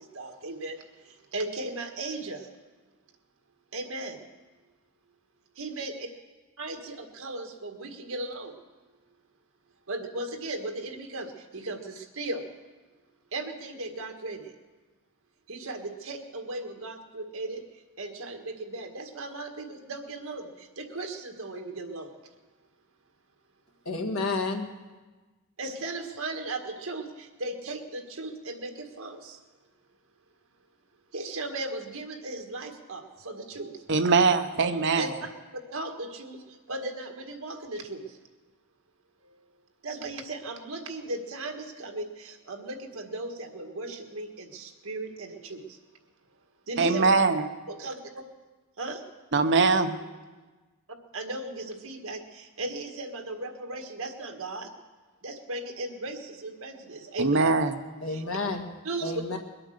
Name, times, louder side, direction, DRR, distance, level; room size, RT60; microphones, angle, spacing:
voice 1, 0.1-0.8 1.3-2.4 3.7-4.2 5.6-6.1 6.6-8.5 9.9-11.3 11.5-12.4 13.3-14.4 15.5-17.6 18.0-20.5 20.8-22.1 25.6-27.1 27.4-29.4 31.1-33.7 35.0-35.1 35.7-36.4 36.7-38.0 39.8-45.6 46.7-47.1 47.7-47.9 48.8-49.0 51.1-54.7 55.2-57.5 58.1-58.2 58.8-59.2, right 2 dB, 75° right, 4 dB, 1.8 m, -36 dB
voice 2, 23.9-24.7 58.0-58.7 59.0-59.4, left 3 dB, 70° left, 4 dB, 1.7 m, -30 dB
voice 3, 33.9-35.1 46.8-47.5 49.3-50.0 57.2-57.7, right 4 dB, 55° right, 9 dB, 0.8 m, -22 dB
22.0 x 8.8 x 6.6 m, 1.3 s
head